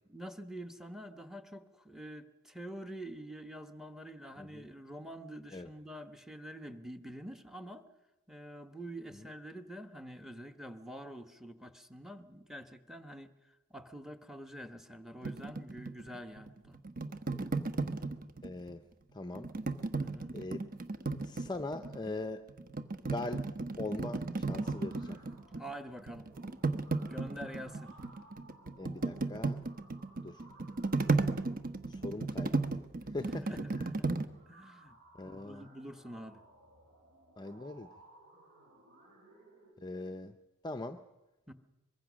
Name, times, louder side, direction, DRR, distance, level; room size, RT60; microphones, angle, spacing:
voice 1, 0.1-7.8 8.3-13.3 13.7-16.8 19.9-20.3 25.6-26.3 27.0-27.9 33.4-34.1 34.5-35.0 35.2-36.4 41.5-41.6, right 1 dB, ahead, 9 dB, 1.2 m, -46 dB
sound 1, 15.2-18.7 19.3-22.1 22.5-25.7 26.0-34.2, right 3 dB, 40° right, 1.1 m, -35 dB
voice 2, 18.4-18.8 19.1-19.5 20.3-20.7 21.2-22.4 23.0-23.4 23.8-25.2 28.8-29.6 30.2-30.4 31.9-32.6 33.1-33.5 33.8-33.9 35.2-35.6 37.4-37.9 39.8-40.3 40.6-41.0, left 2 dB, 20° left, 9 dB, 0.6 m, -41 dB
sound 2, 24.5-39.7, right 2 dB, 60° right, 7.9 m, -60 dB
24.0 x 22.0 x 6.3 m, 1.0 s
head